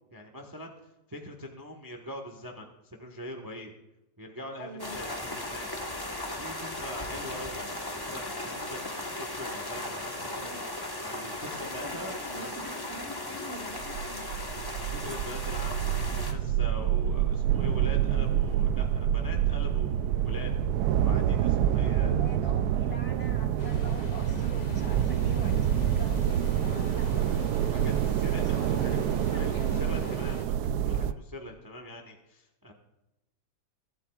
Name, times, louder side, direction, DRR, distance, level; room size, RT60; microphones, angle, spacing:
voice 1, 0.1-0.7 1.1-3.7 4.2-5.7 6.4-8.8 9.0-12.5 14.7-15.8 16.3-20.5 21.0-22.1 27.1-29.0 29.3-32.7, equal, 15° right, 3 dB, 1.0 m, -43 dB
voice 2, 4.6-5.0 10.4-10.6 11.6-14.3 22.0-27.2 27.8-30.1, right 1 dB, 35° left, 3 dB, 1.7 m, -43 dB
sound 1, 4.8-16.3, left 1 dB, 15° left, 1.0 m, -37 dB
sound 2, 13.7-31.1, right 10 dB, 75° right, 0.9 m, -27 dB
sound 3, 23.6-30.5, left 4 dB, 65° left, 2.2 m, -45 dB
23.0 x 12.5 x 2.4 m, 0.96 s
omnidirectional pair, 2.1 m